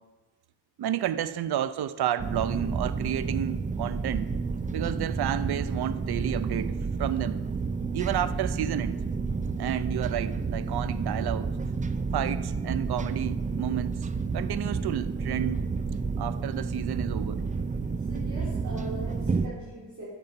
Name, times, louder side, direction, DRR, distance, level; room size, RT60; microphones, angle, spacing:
voice 1, 0.8-4.3 4.7-6.7 7.0-7.4 7.9-9.0 9.6-11.5 12.1-14.0 14.3-15.7 16.2-17.4, right 11 dB, 60° right, 14 dB, 0.6 m, -31 dB
sound 1, 2.2-19.5, right 4 dB, 20° right, 0.4 m, -30 dB
voice 2, 17.8-20.1, right 1 dB, 40° right, -9 dB, 3.3 m, -41 dB
11.0 x 7.2 x 5.3 m, 1.3 s
cardioid pair, 100°, 44 cm